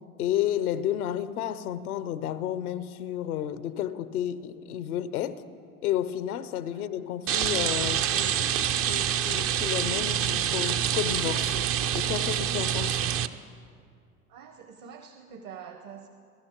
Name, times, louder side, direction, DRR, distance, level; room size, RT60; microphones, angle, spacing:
voice 1, 0.2-5.4 5.8-11.6 11.9-13.0, left 11 dB, 75° left, 0.7 m, -31 dB
Rain, 7.3-13.3, right 9 dB, 35° right, 0.5 m, -26 dB
voice 2, 14.3-16.1, right 7 dB, 50° right, 1.1 m, -45 dB
21.5 x 13.0 x 3.0 m
hypercardioid pair, 70°, 44 cm